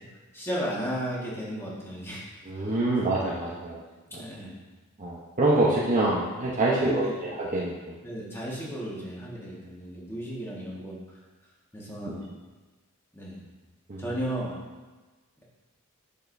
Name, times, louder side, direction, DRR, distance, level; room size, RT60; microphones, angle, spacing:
voice 1, 0.3-2.2 2.6-2.7 4.1-4.6 6.7-7.1 8.0-11.0 11.7-12.3 13.1-13.4 14.0-14.6, equal, 10° left, -5 dB, 1.6 m, -34 dB
voice 2, 2.5-3.8 4.1-4.2 5.0-8.0 12.0-12.1 13.9-14.1, right 2 dB, 35° right, -6 dB, 0.9 m, -26 dB
9.0 x 6.5 x 2.7 m, 1.3 s
head